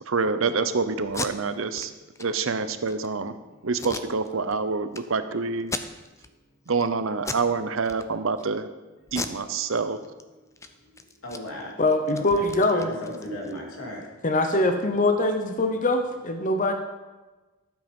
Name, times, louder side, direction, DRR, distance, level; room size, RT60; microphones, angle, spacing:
voice 1, 0.1-1.9 2.2-3.4 3.6-5.7 6.7-8.7 9.1-10.0, right 4 dB, 70° right, 11 dB, 0.8 m, -26 dB
Packing tape duct tape, 1.0-1.3 1.7-1.9 2.2-2.3 2.7-3.1 3.8-4.5 4.9-5.0 5.6-6.3 6.7-6.9 7.2-7.5 7.8-8.5 9.1-10.2 10.5-10.7 11.0-13.6, left 3 dB, 15° left, 0.5 m, -36 dB
voice 2, 11.2-11.7 12.3-12.4 12.7-14.0, equal, 90° left, -2 dB, 3.1 m, -36 dB
voice 3, 11.8-12.9 14.2-16.7, left 2 dB, 40° left, 6 dB, 0.9 m, -23 dB
12.5 x 7.7 x 5.4 m, 1.2 s
head